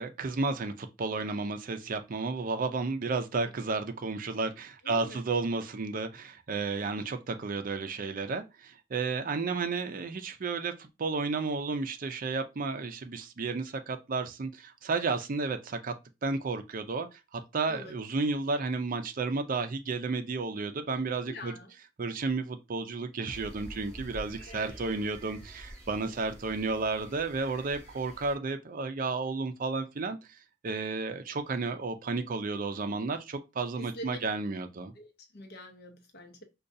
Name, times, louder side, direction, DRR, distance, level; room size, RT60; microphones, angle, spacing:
voice 1, 0.0-15.9 16.2-21.5 22.0-30.2 30.6-34.9, right 3 dB, 45° right, 0.5 m, -32 dB
voice 2, 4.8-5.2 17.7-18.0 21.2-21.8 24.5-24.8 26.0-26.2 33.8-34.2 34.9-36.4, equal, 55° left, 0.8 m, -45 dB
sound 1, 23.3-28.3, equal, 5° left, 1.5 m, -48 dB
5.1 x 2.3 x 2.6 m
head